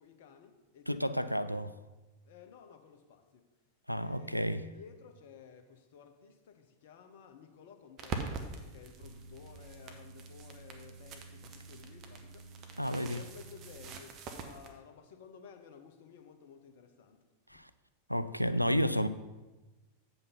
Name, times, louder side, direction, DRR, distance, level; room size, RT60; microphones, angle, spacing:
voice 1, 0.0-1.7 2.2-3.4 4.0-12.5 13.0-17.2 17.5-17.6, left 7 dB, 55° left, 0.9 m, -55 dB
voice 2, 0.9-1.7 3.9-4.6 12.8-13.2 17.5-17.7 18.1-19.1, equal, 90° left, 0.3 m, -31 dB
sound 1, 8.0-14.7, right 4 dB, 35° right, 1.0 m, -44 dB
sound 2, 9.0-13.9, right 3 dB, 80° right, 0.5 m, -52 dB
8.2 x 5.5 x 5.4 m
figure-of-eight pair, 90°, 0 cm